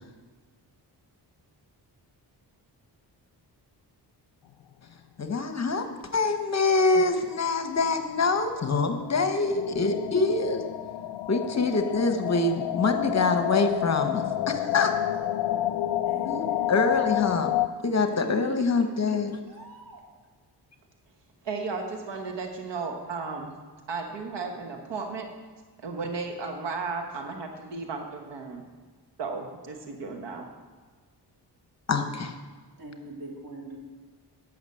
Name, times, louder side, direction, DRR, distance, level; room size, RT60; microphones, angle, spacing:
voice 1, 5.2-5.8 6.1-10.6 11.3-14.9 16.2-17.5 17.8-19.3 31.9-32.3, left 3 dB, 40° left, 7 dB, 1.0 m, -25 dB
sound 1, 7.9-8.0 8.3-8.4 8.6-17.7, left 13 dB, 80° left, 0.5 m, -29 dB
voice 2, 16.0-16.9 18.1-18.7 19.1-19.2 19.5-20.0 32.8-33.8, right 1 dB, 50° right, -1 dB, 2.9 m, -42 dB
voice 3, 21.4-23.5 23.9-25.3 25.8-28.6 29.2-30.4, right 4 dB, 80° right, 3 dB, 1.3 m, -34 dB
9.7 x 6.2 x 7.8 m, 1.4 s
cardioid pair, 105°, 42 cm